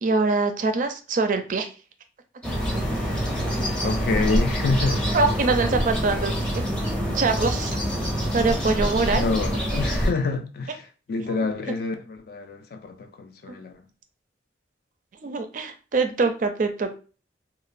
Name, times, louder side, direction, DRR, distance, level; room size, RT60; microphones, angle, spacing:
voice 1, 0.0-1.7 5.1-6.3 6.9-7.8 8.3-9.2 11.3-11.5 13.5-13.6 15.2-17.0, right 3 dB, 45° right, 0.4 m, -24 dB
sound 1, 2.4-10.1, equal, 5° left, 0.6 m, -25 dB
voice 2, 3.8-5.2 9.1-13.8, left 3 dB, 55° left, 0.4 m, -28 dB
2.9 x 2.0 x 2.4 m
head